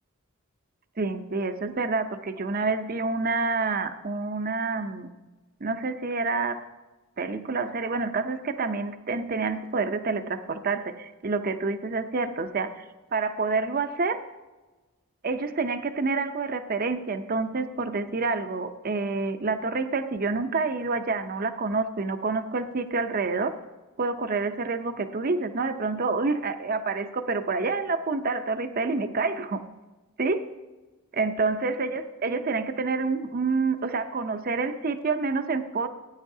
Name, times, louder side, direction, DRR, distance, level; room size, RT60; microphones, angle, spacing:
voice 1, 1.0-5.1 5.6-6.6 7.2-12.8 13.1-14.2 15.2-23.5 24.0-29.6 30.2-30.5 31.1-35.9, right 3 dB, 40° right, 9 dB, 0.6 m, -28 dB
18.0 x 9.6 x 2.7 m, 1.2 s
head